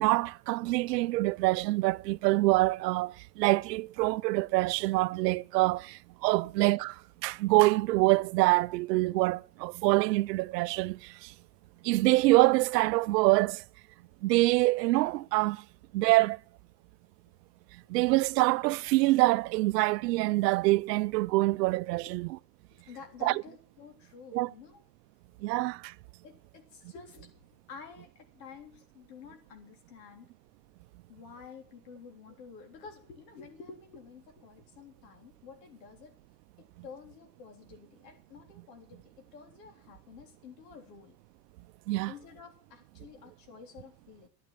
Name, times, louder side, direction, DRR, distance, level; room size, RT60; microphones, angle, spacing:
voice 1, 0.0-6.9 7.2-11.3 11.8-13.6 14.2-15.6 15.9-16.4 17.9-22.4 23.2-23.4 24.3-24.5 25.4-25.9 41.9-42.1, right 21 dB, 85° right, 0.6 m, -25 dB
voice 2, 22.7-24.8 26.2-27.3 27.7-30.3 31.1-36.1 36.6-41.2 42.1-44.3, left 6 dB, 80° left, 3.6 m, -50 dB
10.5 x 10.0 x 7.3 m
supercardioid pair, 110°, 48 cm